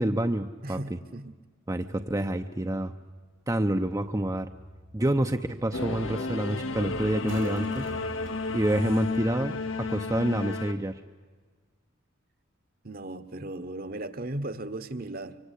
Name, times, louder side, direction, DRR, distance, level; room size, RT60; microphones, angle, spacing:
voice 1, 0.0-1.0 1.7-2.9 3.5-4.5 4.9-7.9 8.5-11.0, right 1 dB, 15° right, 6 dB, 0.7 m, -28 dB
voice 2, 0.6-1.3 12.8-15.4, right 2 dB, 50° right, 12 dB, 1.3 m, -36 dB
sound 1, 3.1-10.4, right 1 dB, 85° right, 3.9 m, -48 dB
Singing / Musical instrument, 5.7-10.7, left 3 dB, 90° left, 2.1 m, -32 dB
25.5 x 25.0 x 8.4 m, 1.5 s
head